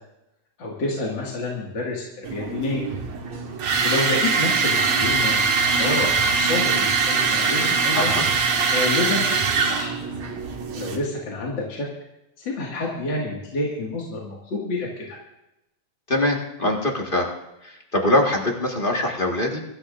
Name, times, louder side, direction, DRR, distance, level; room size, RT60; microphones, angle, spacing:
voice 1, 0.6-2.8 3.8-8.1 8.6-9.9 10.7-11.9 12.4-15.2, left 2 dB, 45° left, -3 dB, 2.5 m, -28 dB
sound 1, 2.2-11.0, right 4 dB, 65° right, 2.6 m, -22 dB
voice 2, 7.9-8.2 16.1-17.3 17.6-19.6, left 1 dB, 25° left, 0 dB, 1.3 m, -23 dB
23.5 x 14.0 x 2.6 m, 0.90 s
omnidirectional pair, 3.3 m